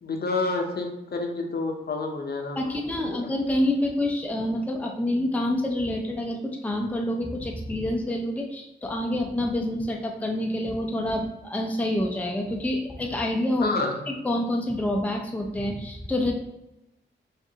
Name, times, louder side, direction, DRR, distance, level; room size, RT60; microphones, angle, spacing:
voice 1, 0.0-3.2 13.6-14.0, left 3 dB, 50° left, 2 dB, 0.7 m, -29 dB
voice 2, 2.6-13.7 14.1-16.3, left 1 dB, 5° left, 1 dB, 0.5 m, -27 dB
4.7 x 2.6 x 2.8 m, 0.94 s
cardioid pair, 65°, 21 cm